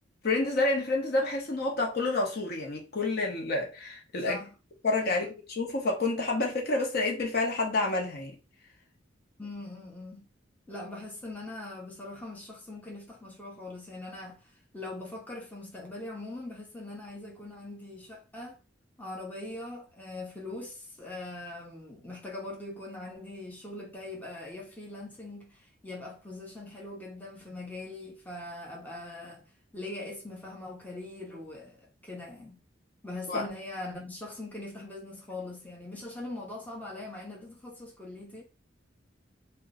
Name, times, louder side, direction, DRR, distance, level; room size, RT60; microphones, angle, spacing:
voice 1, 0.2-4.4 4.8-8.3 33.3-33.4, left 2 dB, 55° left, 0.8 m, -29 dB
voice 2, 4.2-4.5 5.1-5.2 9.4-10.3 10.7-18.6 19.0-29.4 29.7-32.6 33.0-38.4, left 2 dB, 10° left, 0.7 m, -41 dB
2.9 x 2.3 x 3.6 m
head